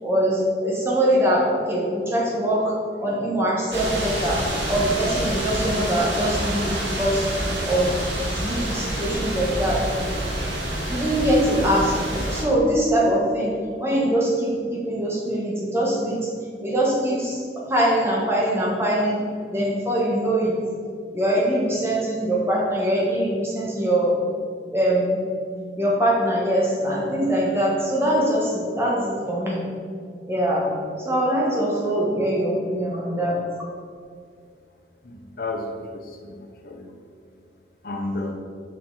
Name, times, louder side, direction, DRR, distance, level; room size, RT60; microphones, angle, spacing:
voice 1, 0.0-2.7 3.0-7.3 7.6-8.0 8.4-9.8 10.9-16.3 16.6-20.6 21.1-24.1 24.7-25.3 25.8-29.7 30.3-30.7 31.0-33.4, right 1 dB, 15° right, -4 dB, 1.3 m, -23 dB
sound 1, 3.7-12.4, right 1 dB, 70° right, 1.5 m, -27 dB
voice 2, 35.0-36.9 37.8-38.3, left 2 dB, 55° left, 1 dB, 0.7 m, -32 dB
6.5 x 5.4 x 4.0 m, 2.2 s
head